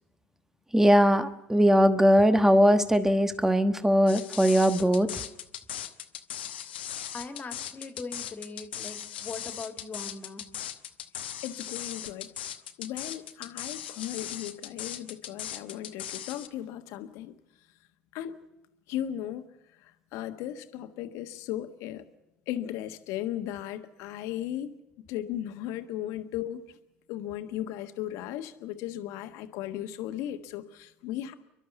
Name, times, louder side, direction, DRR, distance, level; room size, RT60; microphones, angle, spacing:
voice 1, 0.7-5.1, equal, 10° right, 10 dB, 1.2 m, -20 dB
sound 1, 4.1-16.5, left 10 dB, 90° left, 0.9 m, -38 dB
voice 2, 7.1-10.4, left 4 dB, 30° left, 6 dB, 2.3 m, -40 dB
voice 3, 11.4-12.3 12.8-17.3 18.1-18.4 18.9-19.5 20.1-22.0 22.5-24.7 25.1-26.6 27.1-31.3, left 12 dB, 70° left, 8 dB, 1.4 m, -36 dB
29.0 x 11.5 x 8.1 m, 0.91 s
hypercardioid pair, 70°, 5 cm